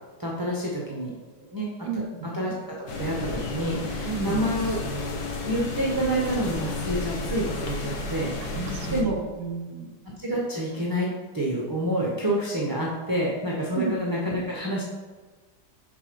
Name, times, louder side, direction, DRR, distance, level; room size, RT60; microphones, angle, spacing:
voice 1, 0.2-1.1 1.5-1.7 2.2-4.8 5.4-9.2 10.2-11.1 11.3-14.8, right 1 dB, 20° right, -4 dB, 0.6 m, -28 dB
voice 2, 1.8-2.3 4.1-4.4 8.5-9.9 13.7-13.9, right 6 dB, 75° right, 7 dB, 1.1 m, -32 dB
sound 1, 2.9-9.0, left 3 dB, 65° left, 1.5 m, -32 dB
7.3 x 3.7 x 5.2 m, 1.3 s
omnidirectional pair, 1.9 m